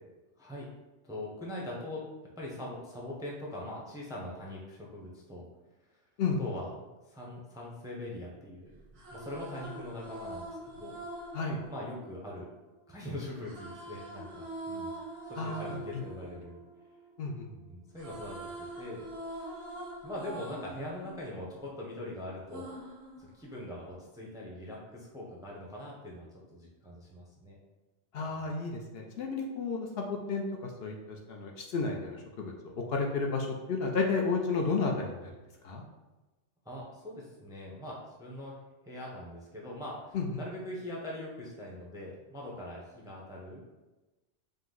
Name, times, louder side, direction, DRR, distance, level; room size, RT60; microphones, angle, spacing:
voice 1, 0.4-0.7 1.0-2.0 2.4-5.5 6.4-6.7 7.1-8.8 9.1-11.0 11.7-12.5 12.9-14.9 15.2-16.6 17.4-18.4 18.8-19.6 20.0-22.7 23.2-27.6 36.6-38.5 38.8-43.6, left 1 dB, 5° right, -3 dB, 0.5 m, -42 dB
voice 2, 6.2-6.5 11.3-11.6 15.4-16.0 17.2-17.5 28.1-35.4 35.6-35.8 40.1-40.4, left 4 dB, 65° left, 1 dB, 0.7 m, -32 dB
sound 1, 8.8-12.9 13.4-17.5 17.8-22.0 22.5-24.0, right 1 dB, 85° right, 1.3 m, -44 dB
5.2 x 2.0 x 3.7 m, 1.1 s
omnidirectional pair, 1.2 m